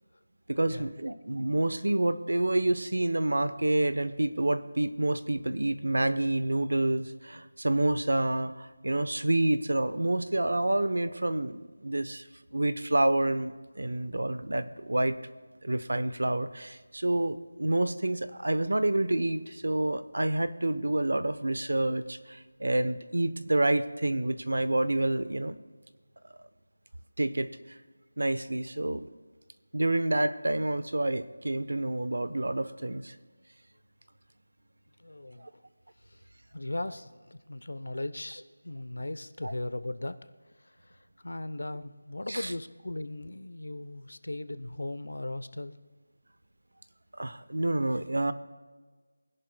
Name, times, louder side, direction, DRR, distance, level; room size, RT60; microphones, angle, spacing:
voice 1, 0.5-12.2 12.5-15.2 15.6-25.5 27.2-27.8 28.2-29.1 29.7-33.2 35.4-35.5 39.4-39.5 42.3-42.5 47.2-48.3, right 1 dB, 85° right, 12 dB, 0.9 m, -28 dB
voice 2, 35.0-35.5 36.0-36.2 36.5-40.2 40.6-45.8, left 1 dB, 90° left, 13 dB, 0.8 m, -38 dB
24.0 x 11.0 x 2.3 m, 1.4 s
figure-of-eight pair, 180°, 0 cm